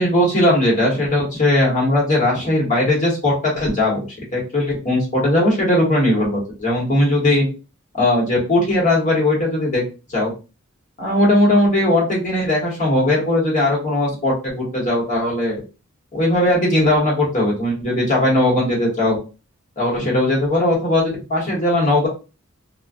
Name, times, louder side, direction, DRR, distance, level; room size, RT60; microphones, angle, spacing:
voice 1, 0.0-4.0 4.3-7.5 8.0-9.8 10.1-10.3 11.0-15.6 16.1-19.2 19.8-22.1, left 1 dB, 40° left, -4 dB, 1.2 m, -18 dB
2.4 x 2.3 x 2.5 m, 0.32 s
head